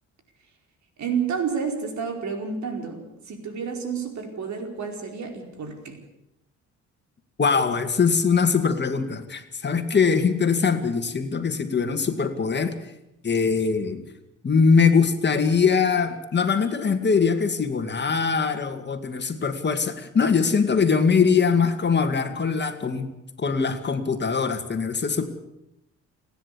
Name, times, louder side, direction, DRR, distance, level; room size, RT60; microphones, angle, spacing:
voice 1, 1.0-6.0, right 6 dB, 65° right, 4 dB, 4.8 m, -30 dB
voice 2, 7.4-12.7 13.2-14.0 14.4-23.1 23.4-25.3, left 5 dB, 35° left, 7 dB, 2.3 m, -22 dB
30.0 x 10.5 x 8.6 m, 0.85 s
cardioid pair, 90°, 30 cm